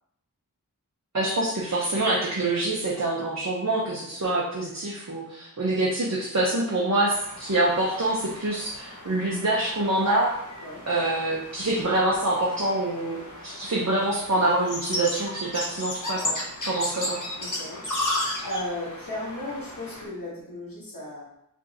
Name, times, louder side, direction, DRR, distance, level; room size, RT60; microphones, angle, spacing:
voice 1, 1.1-10.4 10.9-13.2 13.4-16.3 16.7-17.2, right 2 dB, 55° right, -5 dB, 0.9 m, -25 dB
sound 1, 7.0-20.0, left 1 dB, 65° left, 1.0 m, -35 dB
voice 2, 17.4-18.1 18.4-21.3, left 1 dB, 90° left, -7 dB, 1.4 m, -35 dB
5.0 x 3.5 x 2.9 m, 0.77 s
wide cardioid pair, 45°, 34 cm